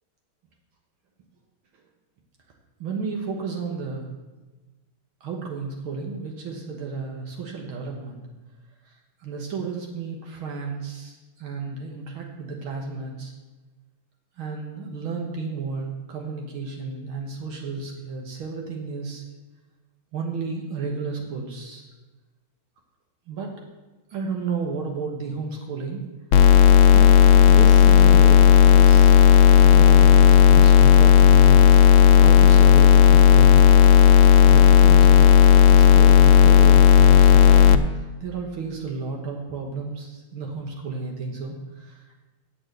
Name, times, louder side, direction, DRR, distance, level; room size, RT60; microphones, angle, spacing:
voice 1, 2.8-4.1 5.2-8.2 8.9-9.0 9.2-13.3 14.4-19.2 20.1-21.9 23.3-23.5 24.1-26.0 26.9-27.1 27.5-29.2 29.6-33.6 34.4-42.1, right 4 dB, 75° right, 1 dB, 2.1 m, -32 dB
sound 1, 26.3-37.8, left 9 dB, 75° left, 1.3 m, -12 dB
8.2 x 7.2 x 7.9 m, 1.2 s
omnidirectional pair, 2.3 m